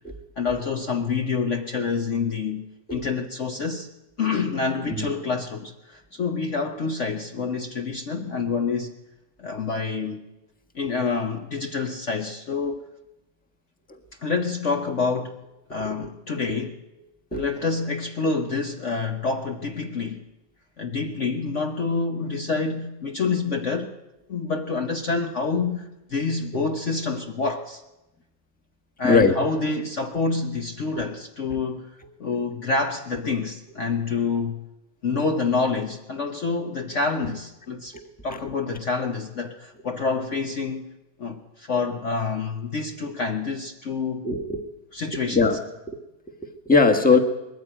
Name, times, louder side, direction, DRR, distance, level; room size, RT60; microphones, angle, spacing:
voice 1, 0.4-3.9 4.2-9.0 9.4-10.3 10.7-12.8 14.2-15.4 15.7-16.8 17.3-20.2 20.8-23.9 24.3-27.8 29.0-31.9 32.2-34.6 35.0-38.0 38.2-40.9 41.2-44.3 44.9-45.4, left 4 dB, 50° left, 3 dB, 1.2 m, -27 dB
voice 2, 29.0-29.4 31.5-31.6 37.9-38.0 44.2-44.6 45.3-45.6 45.9-46.0 46.6-47.2, left 4 dB, 5° left, 3 dB, 1.3 m, -20 dB
21.5 x 14.5 x 9.0 m, 0.99 s
omnidirectional pair, 1.9 m